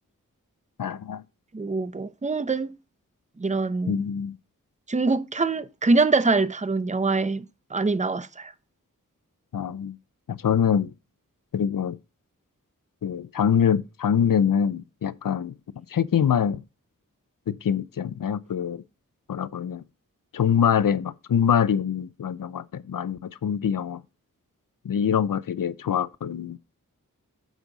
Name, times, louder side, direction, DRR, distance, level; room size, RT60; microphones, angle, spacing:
voice 1, 0.8-1.2 3.9-4.4 9.5-10.0 10.3-10.9 11.5-12.0 13.0-15.5 15.9-16.6 17.5-18.8 19.3-19.8 20.3-24.0 24.8-26.6, left 8 dB, 90° left, 0.6 m, -24 dB
voice 2, 1.5-2.7 3.4-3.9 4.9-7.4 7.7-8.5, right 3 dB, 20° right, 0.7 m, -24 dB
9.0 x 6.3 x 4.0 m
wide cardioid pair, 50°, 32 cm